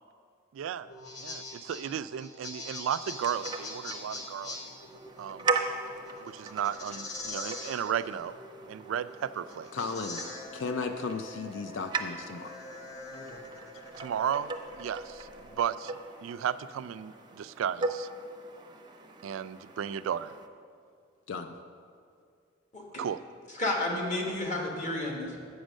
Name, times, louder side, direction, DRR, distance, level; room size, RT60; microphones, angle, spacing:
voice 1, 0.5-0.9 1.2-4.6 5.2-5.5 6.2-8.3 8.7-9.7 14.0-14.5 14.8-15.3 15.6-15.9 16.2-18.1 19.2-20.3 23.0-23.2, right 8 dB, 85° right, 15 dB, 0.3 m, -34 dB
sound 1, 0.8-15.6, left 2 dB, 85° left, 1.5 m, -43 dB
sound 2, 3.1-20.5, right 4 dB, 25° right, 0.5 m, -39 dB
voice 2, 9.7-10.2 10.5-12.6 21.3-21.5, left 4 dB, 70° left, 8 dB, 0.4 m, -35 dB
voice 3, 23.5-25.4, left 2 dB, 40° left, -1 dB, 1.6 m, -32 dB
7.9 x 6.4 x 6.2 m, 2.3 s
head